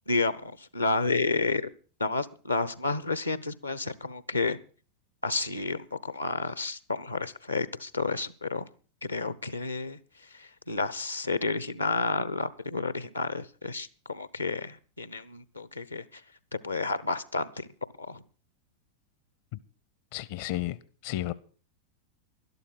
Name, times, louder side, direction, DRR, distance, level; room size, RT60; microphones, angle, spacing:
voice 1, 0.1-1.6 2.0-4.6 5.2-8.7 9.1-10.0 10.3-16.2 16.5-17.7 18.0-18.2, left 3 dB, 85° left, 0.8 m, -31 dB
voice 2, 20.1-20.8 21.0-21.3, left 15 dB, 50° left, 0.6 m, -32 dB
12.0 x 12.0 x 6.0 m
figure-of-eight pair, 90°, 0 cm